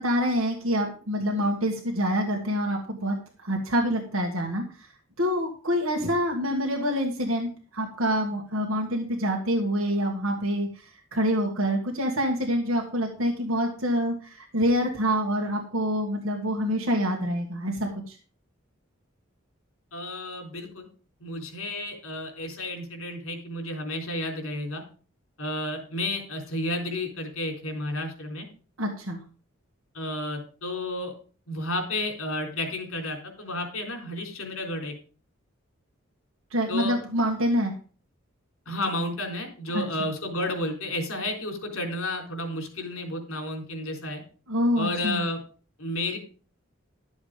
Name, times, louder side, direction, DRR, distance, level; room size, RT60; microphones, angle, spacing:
voice 1, 0.0-4.9 5.2-18.2 28.8-29.2 36.5-37.7 39.7-40.1 44.5-45.2, equal, 75° right, 1 dB, 1.8 m, -26 dB
voice 2, 19.9-20.9 21.2-24.8 25.4-28.5 29.9-31.1 31.5-34.9 36.7-36.9 38.7-44.2 44.8-45.4 45.8-46.2, left 1 dB, 80° left, 3 dB, 3.9 m, -31 dB
12.0 x 7.3 x 5.0 m, 0.39 s
head